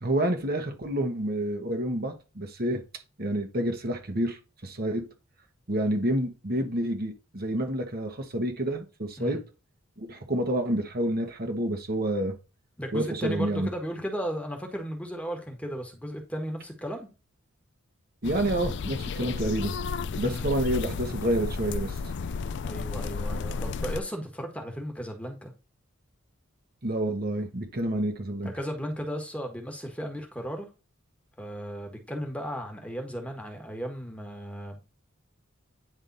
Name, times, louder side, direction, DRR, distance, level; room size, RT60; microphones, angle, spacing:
voice 1, 0.0-2.8 3.2-5.0 5.7-9.4 10.0-12.3 12.9-13.7 18.2-19.7 20.2-22.0 26.8-28.5, right 1 dB, 45° right, 1.3 m, -28 dB
voice 2, 12.8-17.1 20.1-20.6 22.6-25.5 28.4-30.7 31.4-34.8, equal, 5° left, 1.4 m, -35 dB
sound 1, 18.2-24.0, left 4 dB, 60° left, 0.4 m, -32 dB
9.5 x 3.6 x 4.0 m
head